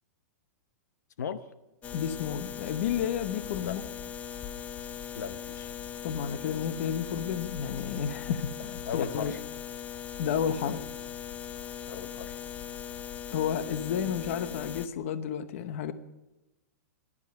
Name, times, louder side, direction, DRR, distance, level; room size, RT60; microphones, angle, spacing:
voice 1, 1.2-1.5 3.6-3.8 5.1-5.7 8.9-9.4 11.9-12.4, left 7 dB, 80° left, 13 dB, 0.8 m, -36 dB
sound 1, 1.8-14.9, left 9 dB, 15° left, 0.5 m, -40 dB
voice 2, 1.9-3.8 6.0-9.3 10.2-10.8 13.3-15.9, left 8 dB, 50° left, 13 dB, 0.9 m, -31 dB
15.0 x 11.0 x 7.5 m, 1.0 s
hypercardioid pair, 155°, 9 cm